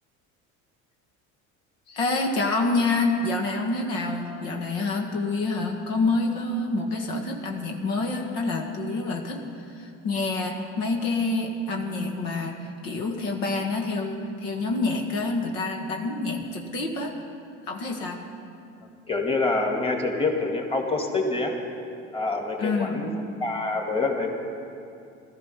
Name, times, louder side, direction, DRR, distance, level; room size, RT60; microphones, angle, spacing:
voice 1, 1.9-17.1 17.7-18.2 22.6-23.1, left 3 dB, 75° left, 1 dB, 1.8 m, -27 dB
voice 2, 19.1-21.6 22.1-23.1 23.4-24.3, left 3 dB, 15° left, 1 dB, 2.2 m, -26 dB
15.5 x 13.0 x 5.8 m, 2.5 s
supercardioid pair, 90°, 36 cm